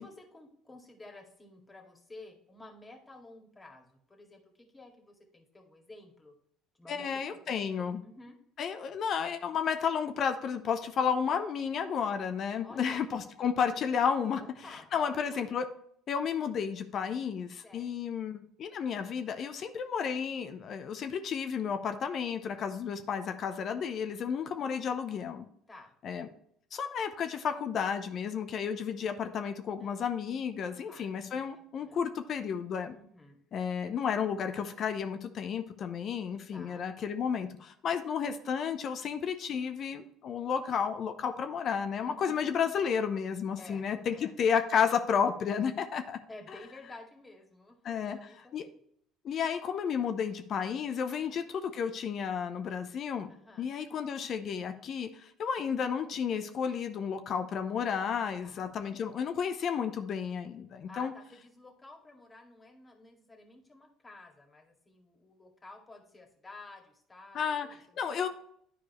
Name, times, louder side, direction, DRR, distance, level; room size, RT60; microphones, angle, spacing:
voice 1, 0.0-6.3 6.8-7.1 7.5-8.4 12.6-13.0 14.3-15.4 17.6-17.9 25.7-25.9 29.8-30.1 30.6-32.0 32.9-33.4 36.5-36.9 42.1-42.5 43.6-44.3 46.3-48.8 51.1-51.4 53.3-53.7 58.4-58.9 60.9-67.8 68.1-68.2, left 2 dB, 20° left, 2 dB, 2.0 m, -52 dB
voice 2, 6.9-8.0 8.6-14.4 14.7-15.7 16.1-25.5 26.0-26.3 26.7-33.0 33.5-46.2 47.8-48.2 48.5-48.7 49.2-53.3 53.6-61.1 67.3-67.7 68.0-68.3, left 7 dB, 50° left, 8 dB, 0.7 m, -32 dB
10.5 x 4.7 x 3.1 m, 0.67 s
hypercardioid pair, 65°, 0 cm